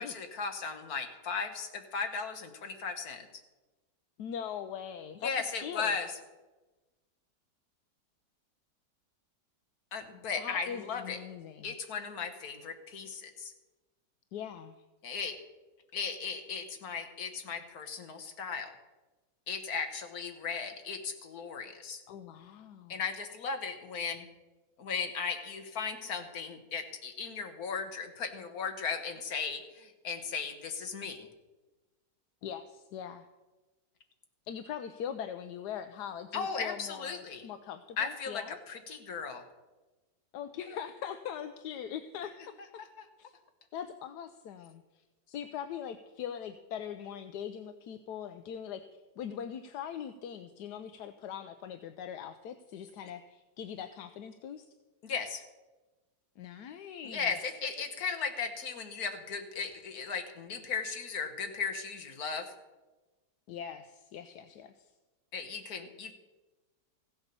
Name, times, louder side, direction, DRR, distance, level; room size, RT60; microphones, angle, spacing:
voice 1, 0.0-3.3 5.2-6.1 9.9-11.2 11.6-13.5 15.0-15.4 15.9-18.7 19.5-22.0 22.9-24.3 24.8-31.3 36.3-37.5 38.0-39.4 42.8-43.0 55.0-55.4 57.1-62.5 65.3-66.1, left 5 dB, 55° left, 6 dB, 1.7 m, -36 dB
voice 2, 4.2-5.3 5.6-5.9 10.3-11.7 14.3-14.8 22.1-23.0 32.4-33.3 34.5-38.6 40.3-42.8 43.2-43.3 43.7-54.6 56.4-57.4 63.5-64.9, left 8 dB, 70° left, 9 dB, 1.2 m, -41 dB
15.5 x 8.1 x 6.8 m, 1.2 s
omnidirectional pair, 1.9 m